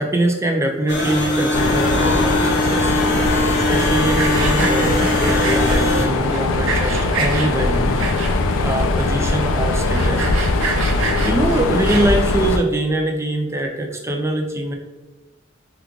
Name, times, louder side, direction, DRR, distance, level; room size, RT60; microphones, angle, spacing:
voice 1, 0.0-8.0 8.6-10.3 10.7-10.9 11.2-14.7, right 1 dB, 15° right, 2 dB, 0.4 m, -23 dB
sound 1, 0.9-6.0, left 1 dB, 60° left, 0.7 m, -21 dB
Mechanisms, 1.5-12.6, left 3 dB, 85° left, 0.3 m, -20 dB
Sawing, 3.6-5.8 6.3-7.5 8.0-8.6 9.0-9.1 9.3-9.4 9.8-12.3, right 4 dB, 80° right, 0.5 m, -26 dB
3.0 x 2.3 x 3.6 m, 1.1 s
head